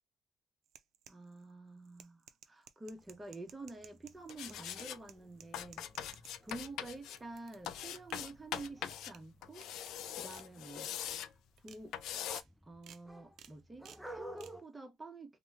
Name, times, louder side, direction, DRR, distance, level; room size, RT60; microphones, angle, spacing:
sound 1, 0.7-1.4 1.8-6.6 7.0-8.3 8.6-9.2 9.6-9.9 10.3-10.4 10.8-11.2 11.6-11.8 12.3-12.5 12.8-13.0 13.4-13.5 13.8-14.0 14.4-14.5, right 9 dB, 75° right, 0.4 m, -56 dB
voice 1, 1.1-9.7 10.1-11.1 11.6-11.9 12.6-15.4, right 2 dB, 20° right, 0.9 m, -49 dB
sound 2, 2.9-14.6, right 1 dB, 5° right, 0.5 m, -56 dB
sound 3, 4.3-5.0 5.5-7.2 7.7-9.1 9.4-11.3 11.9-12.4, left 10 dB, 85° left, 0.3 m, -42 dB
2.9 x 2.1 x 3.3 m
cardioid pair, 90°, 0 cm